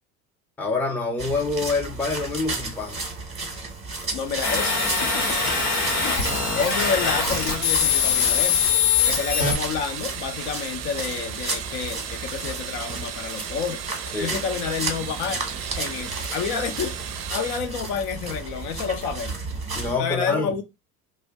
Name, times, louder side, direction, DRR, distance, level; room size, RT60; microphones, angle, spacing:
voice 1, 0.6-3.1 14.1-14.4 19.7-20.5, left 3 dB, 5° left, 0.5 m, -26 dB
sound 1, 1.2-20.0, right 3 dB, 15° right, 0.9 m, -33 dB
voice 2, 4.1-5.5 6.0-8.6 9.0-13.8 14.2-15.4 15.8-19.4 20.0-20.6, left 6 dB, 60° left, 0.7 m, -29 dB
sound 2, 4.4-9.5, left 6 dB, 90° left, 1.1 m, -22 dB
sound 3, 4.6-17.6, right 10 dB, 45° right, 0.5 m, -36 dB
2.5 x 2.2 x 3.4 m
hypercardioid pair, 85°, 45 cm